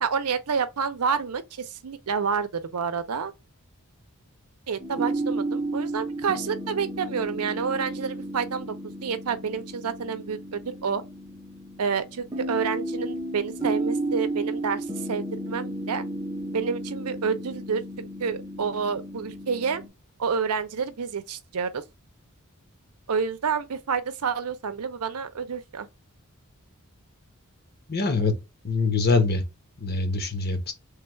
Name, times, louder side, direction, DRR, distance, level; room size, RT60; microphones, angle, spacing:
voice 1, 0.0-3.3 4.7-8.7 9.0-11.0 11.8-16.0 16.5-17.8 18.2-19.8 20.2-21.8 23.1-25.9, right 6 dB, 85° right, 0.6 m, -29 dB
sound 1, 4.8-19.9, right 2 dB, 15° right, 0.6 m, -33 dB
voice 2, 27.9-28.3 28.6-29.4 29.8-30.7, left 3 dB, 45° left, 1.0 m, -24 dB
3.3 x 2.3 x 4.3 m
head